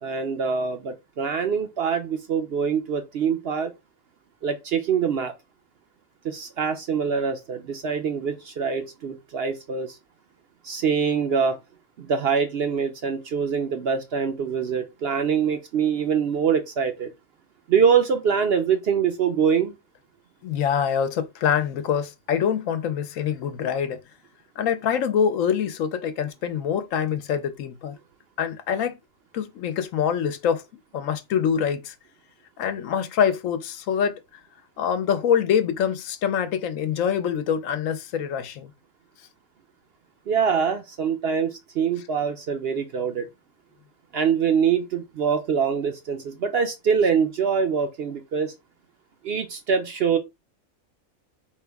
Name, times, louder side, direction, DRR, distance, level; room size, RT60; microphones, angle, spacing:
voice 1, 0.0-3.7 4.4-5.3 6.2-10.0 10.6-11.6 12.0-17.1 17.7-19.8 40.3-43.3 44.1-48.5 49.2-50.2, right 6 dB, 60° right, 0.7 m, -24 dB
voice 2, 20.4-24.0 24.6-27.9 28.4-29.0 29.3-30.6 30.9-31.9 32.6-34.2 34.8-38.7, left 8 dB, 75° left, 1.0 m, -25 dB
4.7 x 3.1 x 3.4 m
omnidirectional pair, 1.4 m